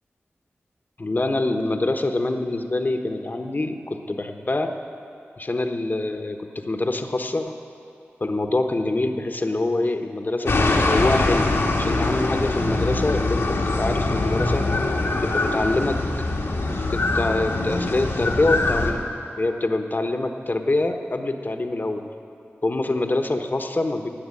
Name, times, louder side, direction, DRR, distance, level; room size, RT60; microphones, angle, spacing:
voice 1, 1.0-4.7 5.4-7.5 8.2-11.5 11.8-14.7 15.2-16.0 16.9-19.1 19.4-22.0 22.6-24.1, left 2 dB, 45° left, 6 dB, 1.2 m, -25 dB
sound 1, 10.5-18.9, left 2 dB, 80° left, 1.8 m, -23 dB
19.0 x 7.2 x 8.6 m, 2.6 s
cardioid pair, 45°, 4 cm